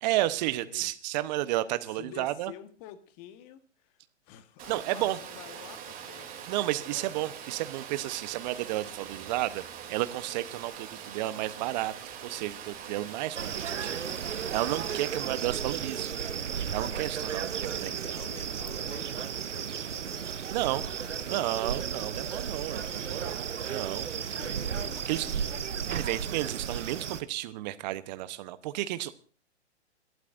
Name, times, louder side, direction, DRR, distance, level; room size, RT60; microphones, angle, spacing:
voice 1, 0.0-2.5 4.7-5.2 6.5-11.9 12.2-16.1 16.7-18.1 20.5-20.8 21.3-24.4 25.1-25.3 25.9-29.1, right 15 dB, 40° right, 1.0 m, -32 dB
voice 2, 1.9-7.1 17.2-21.5 22.8-23.3 24.2-25.8, left 11 dB, 35° left, 1.5 m, -50 dB
Water, 4.6-15.0, right 8 dB, 25° right, 3.0 m, -43 dB
sound 1, 9.0-11.3, left 3 dB, 10° left, 7.8 m, -64 dB
sound 2, 13.3-27.2, right 7 dB, 85° right, 1.0 m, -34 dB
28.0 x 13.0 x 2.6 m
hypercardioid pair, 125°, 35 cm